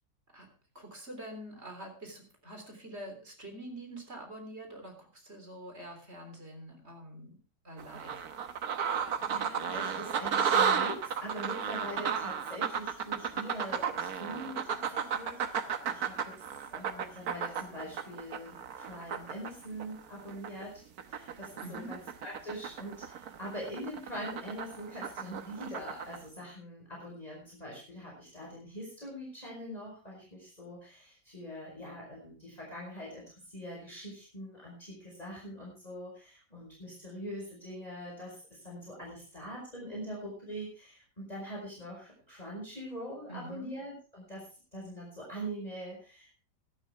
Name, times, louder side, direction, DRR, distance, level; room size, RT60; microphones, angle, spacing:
voice 1, 0.7-7.4 7.6-8.3 21.6-22.0 43.3-43.7, right 1 dB, 35° right, 4 dB, 3.9 m, -45 dB
sound 1, 7.8-20.6 21.0-26.2, right 7 dB, 65° right, 1.4 m, -33 dB
voice 2, 9.2-20.7 21.1-44.4 44.7-46.4, equal, 20° left, -4 dB, 5.2 m, -43 dB
17.0 x 12.0 x 3.5 m, 0.36 s
omnidirectional pair, 1.8 m